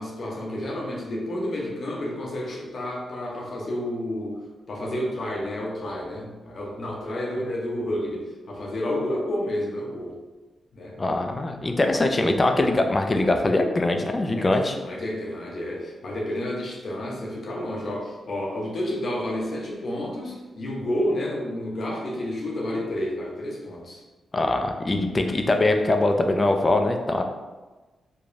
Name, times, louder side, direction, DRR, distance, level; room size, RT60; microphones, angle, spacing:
voice 1, 0.0-4.4 4.7-10.2 10.7-11.0 11.9-12.0 14.3-24.0, left 1 dB, 65° left, -2 dB, 0.7 m, -30 dB
voice 2, 11.0-14.8 24.3-27.2, left 2 dB, 35° left, 5 dB, 0.4 m, -22 dB
3.1 x 2.2 x 2.5 m, 1.2 s
supercardioid pair, 50°, 0 cm